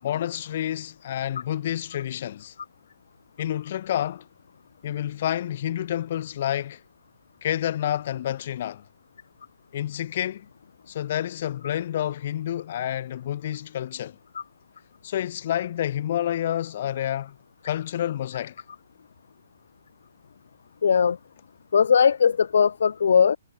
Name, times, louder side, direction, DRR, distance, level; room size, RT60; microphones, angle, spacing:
voice 1, 0.0-2.5 3.4-4.3 4.8-6.8 7.4-8.8 9.7-10.5 10.9-14.2 15.0-17.4 17.6-18.6, left 11 dB, 50° left, 7.2 m, -29 dB
voice 2, 20.8-21.2 21.7-23.4, left 6 dB, 65° left, 1.7 m, -19 dB
figure-of-eight pair, 135°, 0 cm